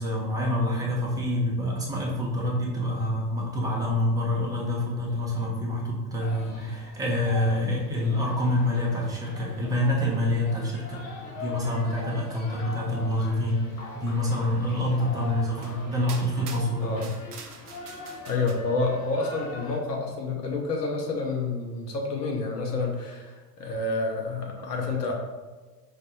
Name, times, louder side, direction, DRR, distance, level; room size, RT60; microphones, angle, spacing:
voice 1, 0.0-13.6 13.9-17.0, left 1 dB, 10° right, -2 dB, 0.4 m, -27 dB
sound 1, 6.2-19.8, left 2 dB, 30° left, 0.9 m, -43 dB
sound 2, 12.0-17.3, left 1 dB, 10° left, 1.1 m, -45 dB
sound 3, 14.9-15.0 15.6-15.8 16.1-18.5, right 5 dB, 65° right, 0.6 m, -44 dB
voice 2, 18.3-25.1, left 3 dB, 75° left, 0 dB, 0.8 m, -29 dB
4.7 x 2.2 x 3.0 m, 1.3 s
figure-of-eight pair, 80°, 49 cm